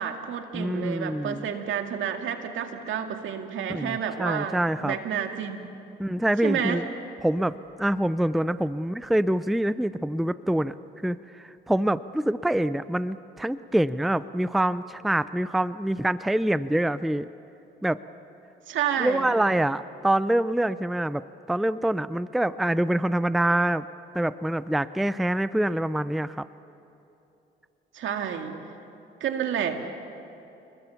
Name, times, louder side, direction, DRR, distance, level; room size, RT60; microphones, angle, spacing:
voice 1, 0.0-5.7 6.4-6.8 18.7-19.3 27.9-28.6 29.2-29.9, right 8 dB, 75° right, 5 dB, 2.1 m, -30 dB
voice 2, 0.5-1.5 3.7-5.0 6.0-6.8 7.2-10.7 11.0-17.3 17.8-18.0 19.0-23.9 24.1-26.5, right 1 dB, ahead, 15 dB, 0.5 m, -25 dB
29.0 x 20.5 x 7.0 m, 2.9 s
cardioid pair, 90°, 20 cm